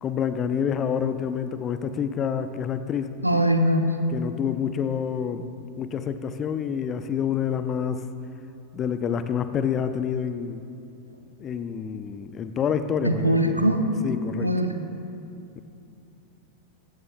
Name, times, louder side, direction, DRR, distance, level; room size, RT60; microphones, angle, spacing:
voice 1, 0.0-3.1 4.1-5.5 5.8-8.0 8.7-10.7 11.4-13.7 14.0-14.5, left 7 dB, 30° left, 10 dB, 0.6 m, -28 dB
voice 2, 3.2-3.8 13.0-13.8 14.4-14.7, equal, 90° right, 5 dB, 0.9 m, -21 dB
19.5 x 15.5 x 2.2 m, 2.7 s
figure-of-eight pair, 90°, 0 cm